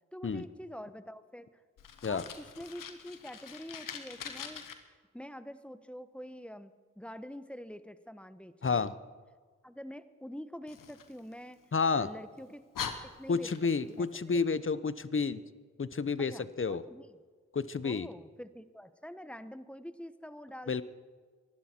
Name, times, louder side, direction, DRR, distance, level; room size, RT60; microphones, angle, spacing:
voice 1, 0.1-1.6 2.1-4.7 5.1-8.9 9.6-11.6 12.0-12.6 13.2-13.5 13.8-14.4 16.2-17.1 17.8-20.8, equal, 5° left, 12 dB, 1.1 m, -46 dB
Fire, 1.8-4.7 10.7-11.9 12.4-12.5 12.7-13.9, left 7 dB, 85° left, 1.3 m, -43 dB
voice 2, 8.6-8.9 11.7-12.1 13.3-15.4 15.8-16.8 17.5-18.1 20.7-20.8, left 5 dB, 40° left, 15 dB, 0.9 m, -30 dB
25.5 x 12.0 x 4.5 m, 1.5 s
supercardioid pair, 40°, 32 cm